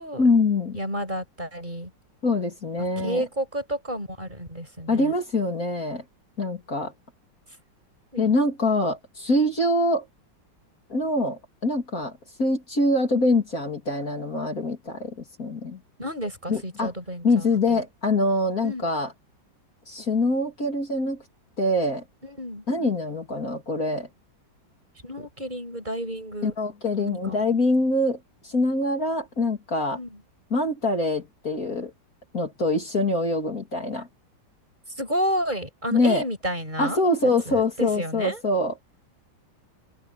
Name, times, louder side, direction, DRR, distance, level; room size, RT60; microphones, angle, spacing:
voice 1, 0.2-0.8 2.2-3.2 4.9-6.0 6.4-6.9 8.2-10.1 10.9-12.1 12.4-15.8 16.5-16.9 17.2-19.1 19.9-21.2 21.6-22.0 22.7-24.1 26.4-28.2 28.4-30.0 30.5-31.9 32.3-34.1 35.9-36.2 36.8-38.7, left 2 dB, 45° left, 3.5 m, -24 dB
voice 2, 0.7-1.9 3.0-5.1 8.1-8.4 16.0-17.8 18.6-18.9 22.2-22.6 25.0-26.5 27.0-27.4 29.9-30.2 35.0-37.0 37.5-38.4, equal, 25° right, 6.2 m, -31 dB
omnidirectional pair, 2.0 m